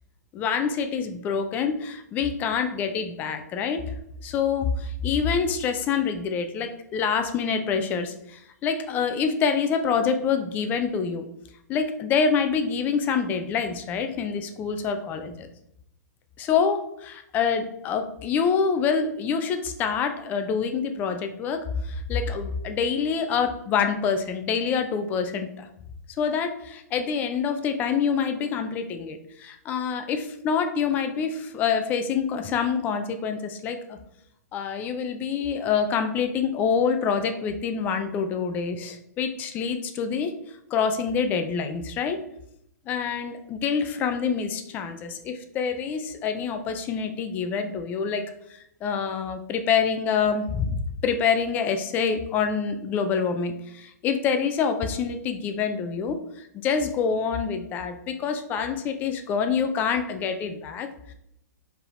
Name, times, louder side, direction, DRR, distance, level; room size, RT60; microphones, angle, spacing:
voice 1, 0.3-3.9 4.2-11.2 11.7-15.5 16.4-25.7 26.2-34.0 34.5-40.3 40.7-42.2 42.9-61.1, left 6 dB, 20° left, 7 dB, 0.3 m, -26 dB
4.7 x 3.4 x 2.5 m, 0.76 s
hypercardioid pair, 155°, 9 cm